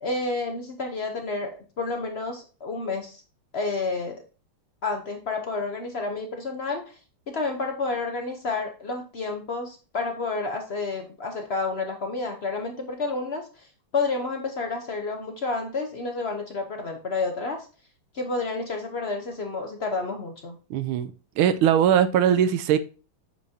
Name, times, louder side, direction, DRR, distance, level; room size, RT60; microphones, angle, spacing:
voice 1, 0.0-3.2 3.5-4.1 4.8-7.0 7.3-13.7 13.9-17.7 18.1-20.6, left 3 dB, 80° left, 0.5 m, -30 dB
voice 2, 20.7-21.1 21.4-22.8, right 9 dB, 80° right, 1.4 m, -20 dB
8.6 x 6.1 x 2.8 m
omnidirectional pair, 2.4 m